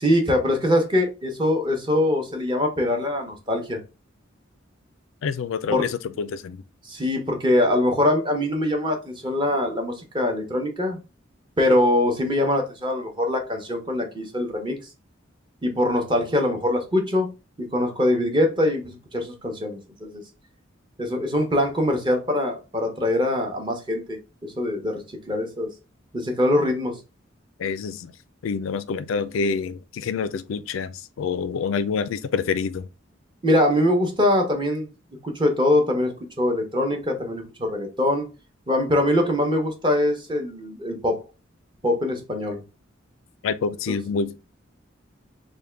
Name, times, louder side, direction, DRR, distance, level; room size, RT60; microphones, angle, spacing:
voice 1, 0.0-3.8 5.7-5.8 6.9-11.0 11.6-14.8 15.6-17.3 17.6-20.2 21.0-25.0 25.3-25.7 26.1-27.0 33.4-34.9 35.2-38.3 38.7-41.2 41.8-42.6, left 1 dB, 25° right, 0.7 m, -23 dB
voice 2, 5.2-6.6 27.6-28.1 28.4-32.9 43.4-44.4, left 5 dB, 90° left, 0.4 m, -27 dB
3.4 x 2.1 x 3.2 m
head